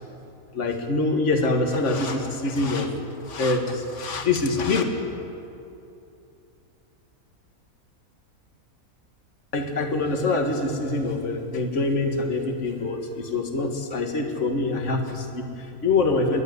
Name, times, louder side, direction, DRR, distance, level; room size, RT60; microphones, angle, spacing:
voice 1, 0.5-2.9 3.3-4.8 9.5-16.4, left 3 dB, 50° left, 4 dB, 2.2 m, -25 dB
29.5 x 12.0 x 9.6 m, 2.7 s
omnidirectional pair, 1.6 m